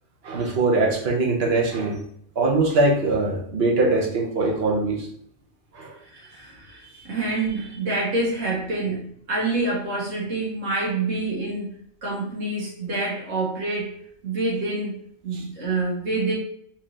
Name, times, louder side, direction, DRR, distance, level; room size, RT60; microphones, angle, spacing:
voice 1, 0.2-2.0 2.4-5.1 5.7-6.0 15.3-15.4, right 2 dB, 50° right, -1 dB, 1.0 m, -22 dB
voice 2, 6.1-11.7 12.0-13.9 14.2-15.0 15.2-16.3, right 2 dB, 70° right, -5 dB, 1.8 m, -27 dB
4.4 x 2.6 x 3.1 m, 0.66 s
omnidirectional pair, 1.4 m